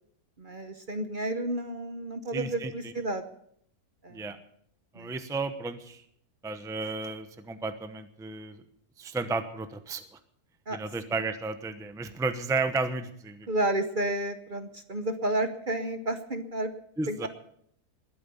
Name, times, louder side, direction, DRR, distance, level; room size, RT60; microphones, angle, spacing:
voice 1, 0.4-3.2 4.0-4.3 4.9-5.1 10.7-10.8 13.5-16.7 17.1-17.3, right 1 dB, 40° right, 8 dB, 1.0 m, -31 dB
voice 2, 2.3-2.9 4.1-4.4 4.9-6.0 6.4-8.6 9.0-10.0 10.7-13.5 17.0-17.3, right 3 dB, 5° right, 9 dB, 0.7 m, -33 dB
21.0 x 9.2 x 7.0 m, 0.70 s
omnidirectional pair, 1.6 m